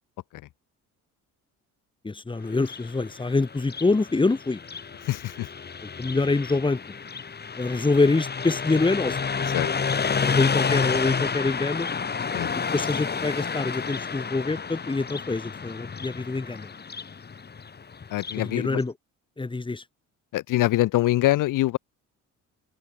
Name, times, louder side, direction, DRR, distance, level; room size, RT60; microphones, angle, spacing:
voice 1, 2.0-4.6 6.0-6.8 7.6-9.2 10.2-11.9 12.7-16.7 18.4-18.9 19.4-19.8, left 3 dB, 15° left, 2.9 m, -25 dB
Car passing by, 2.5-18.5, left 5 dB, 30° left, 7.1 m, -30 dB
voice 2, 5.0-5.5 9.5-9.7 12.3-12.5 18.1-18.8 20.3-21.8, left 16 dB, 75° left, 2.0 m, -24 dB
cardioid pair, 115°, 32 cm